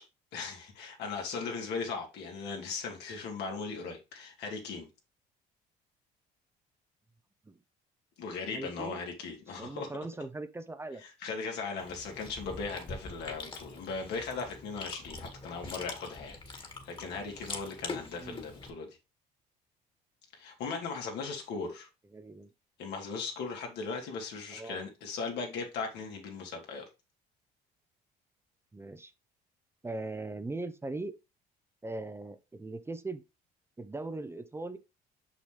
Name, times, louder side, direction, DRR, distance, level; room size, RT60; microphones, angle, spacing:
voice 1, 0.3-4.9 8.2-9.9 11.0-18.9 20.3-21.9 22.8-26.8, left 4 dB, 80° left, 2.8 m, -38 dB
voice 2, 8.5-9.0 9.6-11.0 18.1-18.4 22.1-22.5 24.5-24.8 28.7-29.1 29.8-31.1 31.8-33.2 33.8-34.8, right 2 dB, 15° right, 0.7 m, -39 dB
Chewing mastication, 11.8-18.7, left 3 dB, 30° left, 1.9 m, -44 dB
6.1 x 6.1 x 3.3 m
cardioid pair, 110°, 17 cm